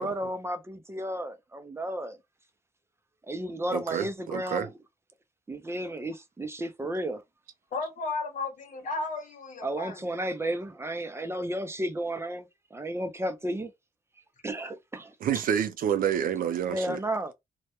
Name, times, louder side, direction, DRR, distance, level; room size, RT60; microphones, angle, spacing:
voice 1, 0.0-2.2 3.3-4.7 5.5-7.2 9.6-12.5 12.7-13.7 14.4-15.1 16.7-17.3, right 1 dB, 20° right, 0.4 m, -33 dB
voice 2, 3.7-4.7 15.2-17.0, right 9 dB, 90° right, 0.5 m, -28 dB
voice 3, 7.7-10.0, left 3 dB, 65° left, 1.0 m, -34 dB
2.2 x 2.1 x 2.8 m
wide cardioid pair, 115°, 14 cm